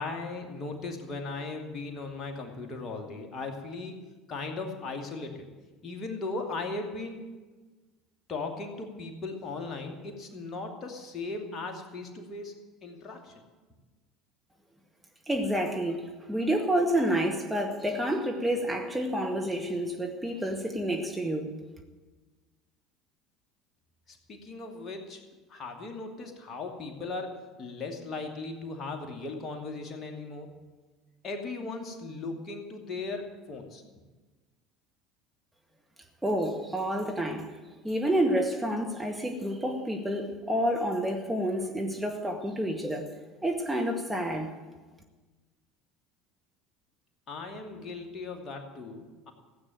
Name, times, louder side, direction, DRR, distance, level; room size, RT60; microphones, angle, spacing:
voice 1, 0.0-4.0 4.3-5.5 5.8-7.2 8.3-13.3 24.1-25.2 25.5-30.5 31.2-33.8 47.3-49.3, left 3 dB, 35° left, 3 dB, 2.5 m, -37 dB
voice 2, 15.3-21.5 36.2-37.5 37.8-43.1 43.4-44.5, right 1 dB, 10° right, 2 dB, 1.8 m, -29 dB
16.0 x 8.7 x 9.2 m, 1.3 s
figure-of-eight pair, 65°, 0 cm